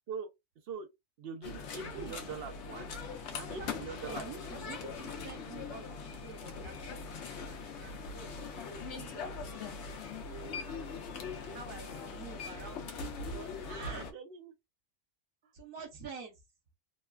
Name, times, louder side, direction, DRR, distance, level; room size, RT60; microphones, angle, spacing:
voice 1, 1.2-2.9 3.5-4.3 4.5-4.6 10.5-10.7 13.9-14.5, right 6 dB, 55° right, 0.7 m, -43 dB
sound 1, 1.4-14.1, left 4 dB, 65° left, 0.9 m, -41 dB
voice 2, 3.4-9.9 10.2-14.1 15.5-16.4, right 5 dB, 85° right, 1.2 m, -49 dB
3.1 x 2.2 x 2.2 m
omnidirectional pair, 1.4 m